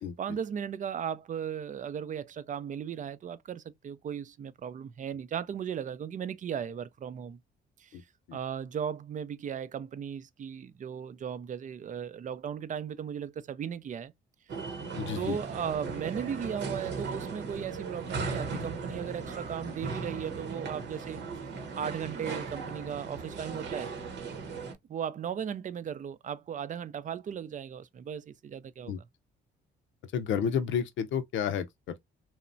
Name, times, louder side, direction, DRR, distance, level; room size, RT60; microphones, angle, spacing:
voice 1, 0.2-7.4 7.8-8.0 8.3-14.1 15.2-21.2 21.8-23.9 24.9-28.9, right 8 dB, 40° right, 0.4 m, -36 dB
sound 1, 14.5-24.7, right 4 dB, 65° right, 0.9 m, -37 dB
voice 2, 15.0-15.4 28.9-29.0 30.1-32.0, left 8 dB, 75° left, 0.6 m, -31 dB
3.0 x 2.1 x 2.5 m
cardioid pair, 90°, 20 cm